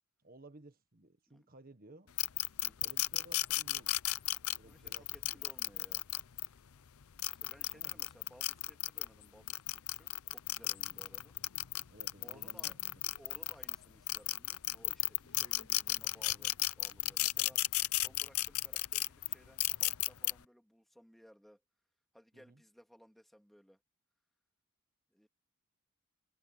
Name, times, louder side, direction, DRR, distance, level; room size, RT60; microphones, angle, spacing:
voice 1, 0.2-2.1 2.8-4.0 4.6-5.4 7.7-8.1 10.9-11.0 11.9-12.9 22.3-22.6, right 2 dB, 40° right, 1.5 m, -57 dB
sound 1, 2.2-6.5 7.0-9.1 9.5-13.7 14.1-20.3, left 17 dB, 75° left, 0.6 m, -34 dB
voice 2, 4.6-6.0 7.4-11.4 12.2-12.8 13.2-17.6 18.0-21.6 22.1-23.8 25.1-25.3, equal, ahead, 2.2 m, -60 dB
head